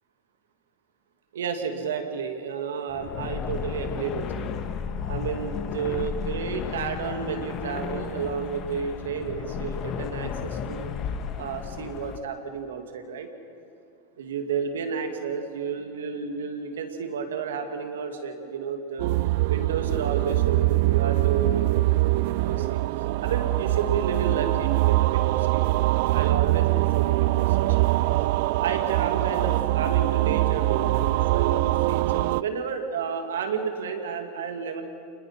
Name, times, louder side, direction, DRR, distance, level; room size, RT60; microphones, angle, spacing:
voice 1, 1.3-4.5 5.1-10.9 11.4-13.3 14.2-19.1 19.5-22.8 23.2-25.6 26.1-28.0 28.6-34.8, right 6 dB, 85° right, 5 dB, 2.5 m, -31 dB
sound 1, 2.9-12.2, left 7 dB, 45° left, 1.5 m, -33 dB
sound 2, 19.0-32.4, right 19 dB, 65° right, 0.5 m, -23 dB
28.5 x 20.0 x 5.8 m, 2.7 s
hypercardioid pair, 100°, 0 cm